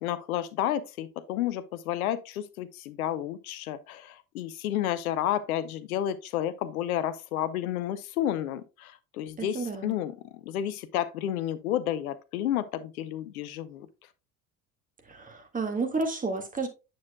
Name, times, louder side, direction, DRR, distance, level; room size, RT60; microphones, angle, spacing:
voice 1, 0.0-13.9, left 11 dB, 65° left, 0.7 m, -31 dB
voice 2, 9.4-9.9 15.1-16.7, right 3 dB, 15° right, 1.9 m, -31 dB
9.4 x 6.3 x 2.2 m
figure-of-eight pair, 65°, 47 cm